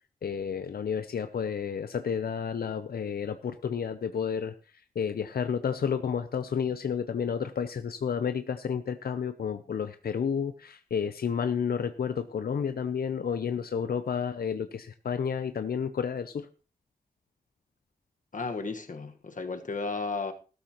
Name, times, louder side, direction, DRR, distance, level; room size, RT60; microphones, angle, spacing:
voice 1, 0.2-4.5 5.0-16.5, left 7 dB, 90° left, 0.6 m, -31 dB
voice 2, 18.3-20.3, left 3 dB, 60° left, 1.4 m, -34 dB
14.5 x 13.0 x 2.9 m
wide cardioid pair, 100°, 15 cm